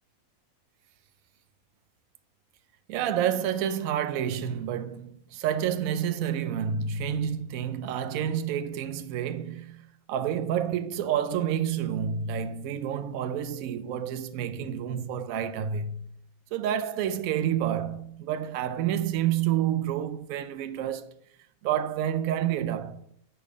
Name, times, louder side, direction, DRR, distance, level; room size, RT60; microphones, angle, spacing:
voice 1, 2.9-16.1 16.5-21.1 21.6-23.0, right 9 dB, 75° right, 1.0 m, -29 dB
5.7 x 5.4 x 4.9 m
omnidirectional pair, 1.5 m